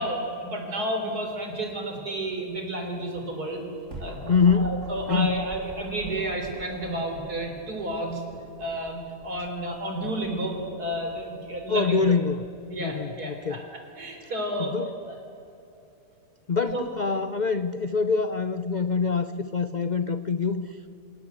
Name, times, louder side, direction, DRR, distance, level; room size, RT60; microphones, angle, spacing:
voice 1, 0.0-3.6 4.0-4.3 4.5-8.2 8.6-12.0 12.7-13.6 14.0-14.7 16.6-16.8, right 1 dB, 65° right, 3 dB, 4.2 m, -31 dB
sound 1, 3.5-12.9, right 1 dB, 45° right, 4.0 m, -45 dB
voice 2, 4.3-4.8 5.1-5.4 11.7-12.5 12.8-13.6 14.2-14.3 14.6-14.9 16.5-20.8, left 5 dB, 90° left, 11 dB, 0.4 m, -25 dB
27.5 x 17.5 x 8.1 m, 2.8 s
omnidirectional pair, 1.8 m